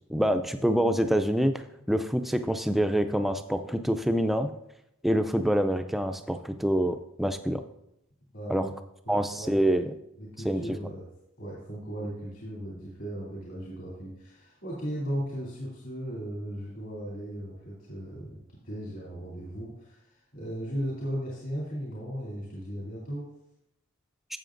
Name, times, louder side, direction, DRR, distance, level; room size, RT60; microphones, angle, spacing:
voice 1, 0.1-1.6 1.9-4.5 5.0-7.6 8.5-8.6 9.1-9.9 10.4-10.6, equal, ahead, 8 dB, 0.3 m, -26 dB
voice 2, 8.3-8.7 9.1-9.8 10.2-11.1 11.4-23.3, equal, 60° left, -7 dB, 2.8 m, -37 dB
12.5 x 7.6 x 2.5 m, 0.83 s
head